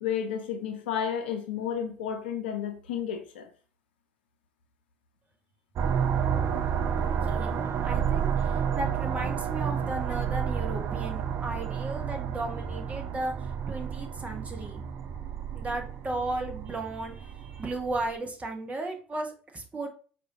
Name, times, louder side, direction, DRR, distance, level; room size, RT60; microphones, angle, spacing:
voice 1, 0.0-3.5, left 8 dB, 75° left, 0.6 m, -32 dB
sound 1, 5.8-18.1, right 7 dB, 50° right, 0.5 m, -30 dB
voice 2, 7.0-13.3 13.7-14.8 15.5-19.9, right 2 dB, 25° right, 1.1 m, -35 dB
4.8 x 2.6 x 2.8 m
figure-of-eight pair, 60°, 6 cm